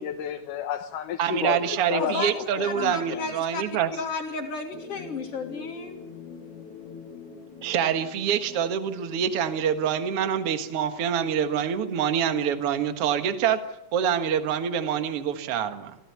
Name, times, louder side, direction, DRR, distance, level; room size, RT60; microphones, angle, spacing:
voice 1, 0.0-3.3, left 9 dB, 85° left, 2.7 m, -32 dB
voice 2, 1.2-3.9 7.6-13.6 13.9-16.0, right 8 dB, 55° right, 2.2 m, -26 dB
voice 3, 2.0-3.6 3.9-6.0, left 3 dB, 50° left, 3.1 m, -33 dB
sound 1, 4.7-10.9, left 6 dB, 65° left, 2.6 m, -45 dB
26.5 x 16.0 x 8.4 m
omnidirectional pair, 3.7 m